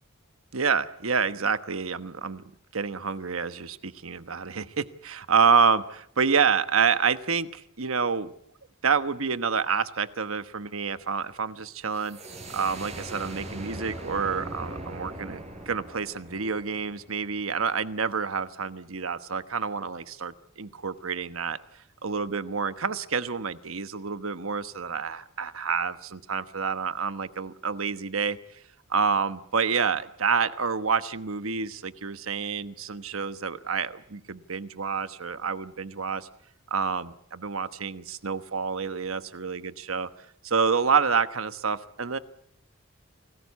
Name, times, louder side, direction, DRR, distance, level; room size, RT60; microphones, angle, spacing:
voice 1, 0.5-2.4 2.7-8.3 8.8-12.2 12.5-21.6 22.0-28.4 28.9-36.3 36.7-40.1 40.4-42.2, right 5 dB, 85° right, 12 dB, 1.2 m, -28 dB
sound 1, 11.9-17.5, right 1 dB, 30° right, 4.4 m, -40 dB
28.0 x 19.5 x 8.3 m, 0.70 s
head